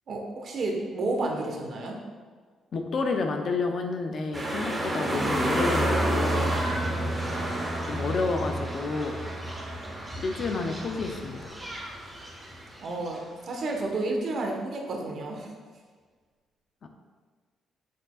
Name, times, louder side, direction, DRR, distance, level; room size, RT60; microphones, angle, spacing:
voice 1, 0.1-2.0 12.8-15.5, right 2 dB, 55° right, 1 dB, 1.2 m, -31 dB
voice 2, 2.7-6.9 7.9-9.2 10.2-11.5 16.8-16.9, left 3 dB, 55° left, 4 dB, 0.6 m, -30 dB
sound 1, 4.3-13.2 13.5-13.6, right 1 dB, 15° right, 1.3 m, -30 dB
6.6 x 6.3 x 2.4 m, 1.5 s
cardioid pair, 90°, 0 cm